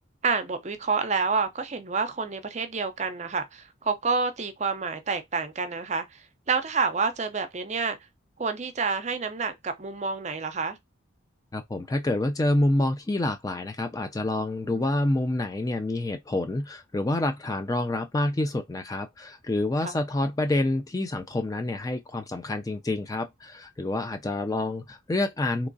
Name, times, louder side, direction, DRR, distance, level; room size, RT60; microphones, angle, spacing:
voice 1, 0.2-8.0 8.4-10.8 14.7-14.9 19.8-20.0, right 4 dB, 35° right, 0.5 m, -28 dB
voice 2, 11.5-25.7, left 2 dB, 20° left, 0.3 m, -27 dB
3.6 x 2.9 x 2.6 m
head